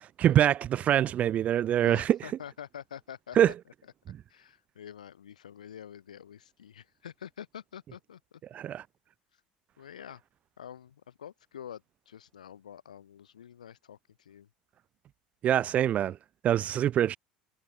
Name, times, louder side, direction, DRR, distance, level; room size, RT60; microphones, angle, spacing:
voice 1, 0.2-2.2 3.4-3.5 8.5-8.8 15.4-16.2 16.4-17.2, right 11 dB, 35° right, 0.3 m, -24 dB
voice 2, 1.8-3.5 4.3-8.4 9.3-9.4 9.8-10.2 10.6-14.5, left 9 dB, 75° left, 4.5 m, -47 dB
figure-of-eight pair, 70°, 4 cm